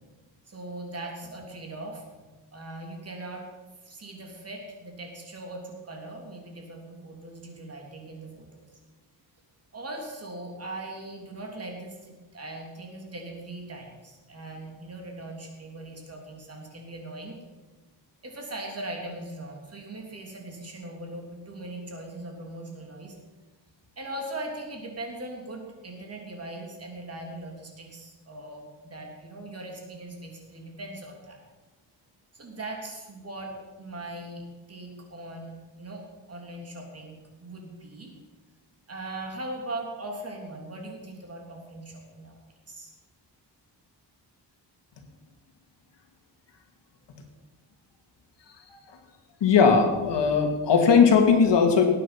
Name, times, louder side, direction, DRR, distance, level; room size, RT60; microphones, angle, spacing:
voice 1, 0.5-3.5 3.8-8.7 9.7-17.4 18.2-23.2 24.0-31.4 32.3-35.5 35.8-38.2 38.9-42.4 42.7-42.9, right 2 dB, 35° right, 1 dB, 3.1 m, -40 dB
voice 2, 49.4-51.8, left 5 dB, 70° left, 4 dB, 2.4 m, -19 dB
19.0 x 9.2 x 5.8 m, 1.2 s
wide cardioid pair, 150°, 43 cm